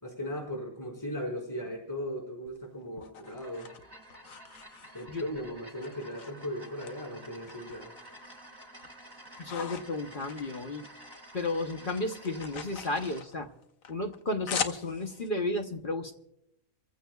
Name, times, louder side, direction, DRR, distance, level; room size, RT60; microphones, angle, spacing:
voice 1, 0.0-3.7 4.9-7.9, equal, 10° left, -3 dB, 4.0 m, -37 dB
sound 1, 2.5-5.3 5.8-6.9 7.2-8.3 8.6-11.2 11.5-15.3, left 7 dB, 70° left, 1.3 m, -41 dB
sound 2, 3.1-13.3, right 1 dB, 15° right, 1.4 m, -51 dB
voice 2, 9.4-10.9 11.3-13.5 13.9-16.1, left 2 dB, 40° left, 5 dB, 1.0 m, -33 dB
28.0 x 15.5 x 2.3 m, 0.78 s
omnidirectional pair, 1.5 m